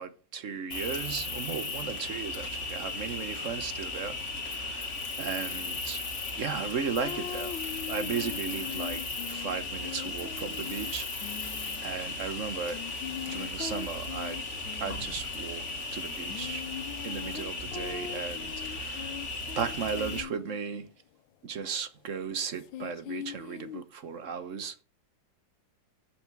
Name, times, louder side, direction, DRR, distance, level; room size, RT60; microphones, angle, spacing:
voice 1, 0.0-6.0 6.3-7.6 7.9-11.1 11.8-12.8 13.2-14.5 14.8-15.6 15.9-16.6 17.0-19.2 19.6-20.9 21.4-24.7, right 6 dB, 50° right, 1.2 m, -36 dB
Cricket, 0.7-20.2, left 3 dB, 40° left, 2.0 m, -36 dB
sound 1, 7.0-12.0 12.7-15.2 16.1-20.7 22.6-23.8, left 10 dB, 80° left, 1.5 m, -41 dB
7.8 x 6.8 x 8.1 m
omnidirectional pair, 2.1 m